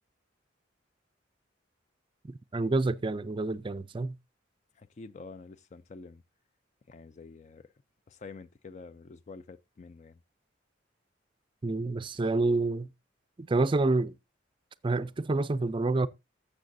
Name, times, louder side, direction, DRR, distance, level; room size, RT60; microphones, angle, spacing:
voice 1, 2.3-4.1 11.6-12.9 13.4-14.1 14.8-16.1, right 2 dB, 25° right, 0.4 m, -28 dB
voice 2, 4.8-6.2 6.9-7.7 8.1-10.2, left 4 dB, 40° left, 0.4 m, -48 dB
12.0 x 7.4 x 2.6 m
head